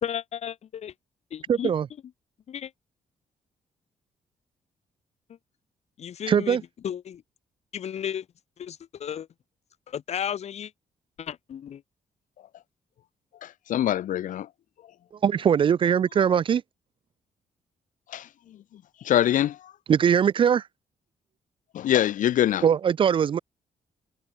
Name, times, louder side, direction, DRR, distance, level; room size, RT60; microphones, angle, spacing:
voice 1, 0.0-0.9 1.3-1.7 2.5-2.7 6.0-6.6 6.8-7.2 7.7-8.3 8.6-9.3 9.9-10.7 11.2-11.8, left 9 dB, 55° left, 2.5 m, -33 dB
voice 2, 1.5-1.9 6.3-6.6 15.2-16.6 19.9-20.6 22.6-23.4, right 8 dB, 40° right, 0.5 m, -21 dB
voice 3, 13.4-14.5 18.1-18.3 19.0-19.6 21.7-22.6, left 11 dB, 75° left, 1.8 m, -23 dB
wide cardioid pair, 165°, 14 cm